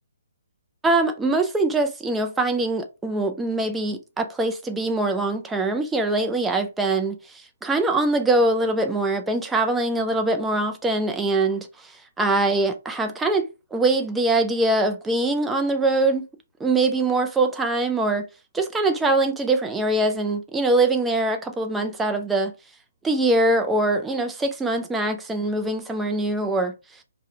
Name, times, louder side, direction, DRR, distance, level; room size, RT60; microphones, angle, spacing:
voice 1, 0.8-7.2 7.6-11.7 12.2-16.2 16.6-18.3 18.5-22.5 23.0-26.7, right 2 dB, 10° right, 0.3 m, -23 dB
2.4 x 2.1 x 2.6 m
figure-of-eight pair, 140°, 0 cm